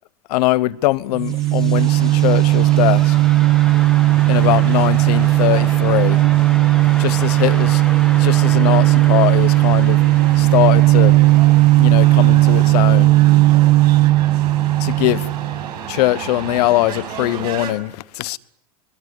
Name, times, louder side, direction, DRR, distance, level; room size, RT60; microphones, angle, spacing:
voice 1, 0.3-3.1 4.3-6.2 7.0-7.8 8.1-10.0 10.4-11.1 11.8-13.1 14.8-15.3 15.9-18.4, left 17 dB, 75° left, 1.1 m, -21 dB
sound 1, 0.7-13.5, left 1 dB, ahead, 1.6 m, -35 dB
sound 2, 1.1-15.7, right 18 dB, 60° right, 1.1 m, -15 dB
sound 3, 1.7-17.7, right 8 dB, 85° right, 7.1 m, -32 dB
22.5 x 22.0 x 9.7 m
supercardioid pair, 110°, 20 cm